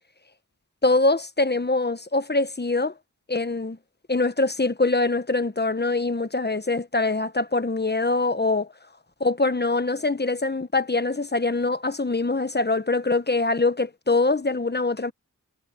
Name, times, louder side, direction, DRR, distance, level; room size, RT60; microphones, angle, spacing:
voice 1, 0.8-2.9 3.3-3.8 4.1-8.7 9.2-15.1, left 3 dB, 30° left, 1.2 m, -23 dB
wide cardioid pair, 50°, 34 cm